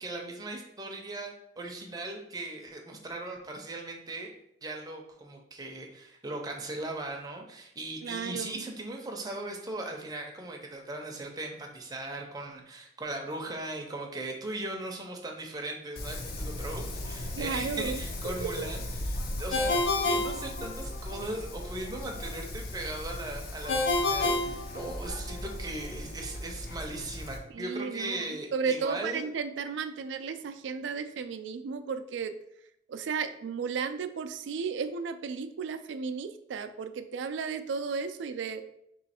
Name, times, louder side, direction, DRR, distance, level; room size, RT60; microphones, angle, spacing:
voice 1, 0.0-4.3 4.6-29.3, right 2 dB, 20° right, 1 dB, 0.5 m, -38 dB
voice 2, 8.0-8.7 17.4-18.0 18.2-18.7 27.5-32.3 32.9-38.6, right 5 dB, 75° right, 9 dB, 0.3 m, -34 dB
Wind, 16.0-27.4, left 1 dB, 50° left, 0.5 m, -38 dB
Ringtone, 19.5-21.2 23.7-25.4, left 2 dB, 85° left, 0.7 m, -28 dB
3.1 x 3.1 x 4.2 m, 0.77 s
head